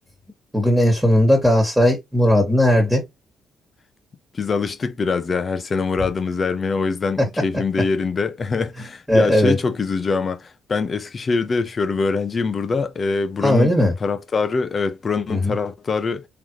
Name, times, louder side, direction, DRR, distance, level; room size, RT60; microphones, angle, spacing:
voice 1, 0.5-3.0 7.2-7.3 9.1-9.6 13.4-13.9 15.3-15.5, left 1 dB, ahead, 2.0 m, -17 dB
voice 2, 4.3-13.7 14.0-16.3, left 4 dB, 40° left, 1.0 m, -23 dB
4.0 x 3.4 x 3.2 m
cardioid pair, 90°, 0 cm